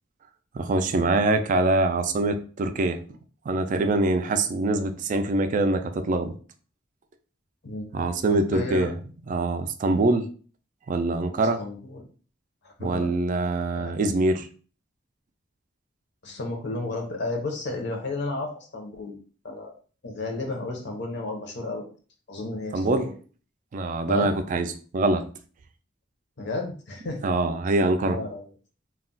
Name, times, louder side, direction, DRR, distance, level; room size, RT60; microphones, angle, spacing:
voice 1, 0.5-3.0 3.5-6.3 7.9-8.9 9.3-10.3 10.9-11.6 12.8-14.5 22.7-23.1 23.7-25.2 27.2-28.2, right 2 dB, 40° right, 8 dB, 0.3 m, -24 dB
voice 2, 8.3-8.9 11.6-12.0 12.6-13.1 13.7-13.9 16.2-19.2 19.4-19.7 20.0-21.9 22.3-23.1 24.1-24.3 26.4-27.2 28.0-28.4, left 2 dB, 60° left, 2 dB, 0.7 m, -32 dB
2.3 x 2.1 x 3.8 m, 0.40 s
head